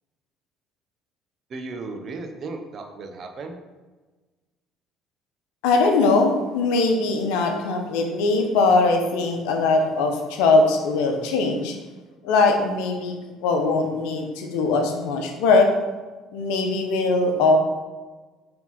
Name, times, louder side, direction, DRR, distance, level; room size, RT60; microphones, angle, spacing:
voice 1, 1.5-3.6, right 3 dB, 50° right, 4 dB, 0.9 m, -35 dB
voice 2, 5.6-11.7 12.2-13.1 13.4-15.7 16.3-17.6, left 3 dB, 75° left, 4 dB, 0.9 m, -21 dB
4.7 x 3.8 x 5.6 m, 1.3 s
hypercardioid pair, 65°, 0 cm